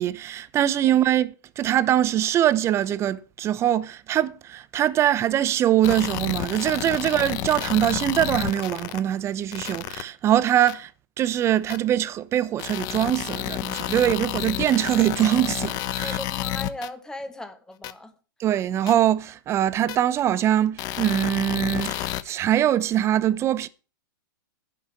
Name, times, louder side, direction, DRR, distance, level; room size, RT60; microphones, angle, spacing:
voice 1, 0.0-10.9 11.2-16.2 18.4-23.7, right 11 dB, 25° right, 0.8 m, -23 dB
sound 1, 5.8-9.0 9.5-10.0 10.7-10.8 11.7-11.8 12.6-16.9 17.8-17.9 18.9-19.0 19.9-20.0 20.8-22.2, left 14 dB, 35° left, 0.9 m, -30 dB
voice 2, 16.0-18.1, left 1 dB, 5° left, 1.5 m, -37 dB
10.5 x 5.8 x 8.3 m
hypercardioid pair, 125°, 11 cm